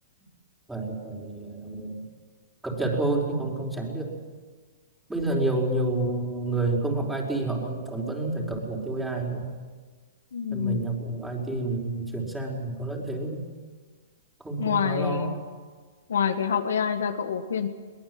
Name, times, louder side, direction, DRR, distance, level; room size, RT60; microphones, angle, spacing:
voice 1, 0.7-2.0 2.6-4.1 5.1-9.5 10.5-13.4 14.4-15.3, right 2 dB, 5° right, -1 dB, 4.8 m, -29 dB
voice 2, 10.3-10.9 14.6-15.4 16.1-17.7, left 7 dB, 80° left, 7 dB, 1.8 m, -26 dB
22.5 x 19.0 x 7.9 m, 1.5 s
hypercardioid pair, 135°, 0 cm